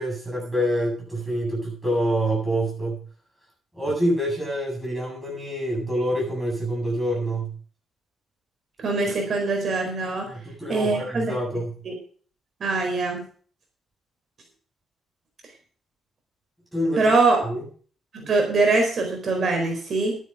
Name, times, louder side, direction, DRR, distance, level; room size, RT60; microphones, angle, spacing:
voice 1, 0.0-3.0 3.7-7.5 10.2-11.8 16.7-17.1 17.4-17.6, right 1 dB, 5° right, -2 dB, 7.9 m, -26 dB
voice 2, 8.8-10.3 10.7-11.3 11.8-11.9 12.6-13.2 17.0-17.5 18.1-20.2, right 3 dB, 40° right, 2 dB, 4.4 m, -23 dB
12.0 x 10.5 x 5.0 m, 0.43 s
cardioid pair, 150°, 0 cm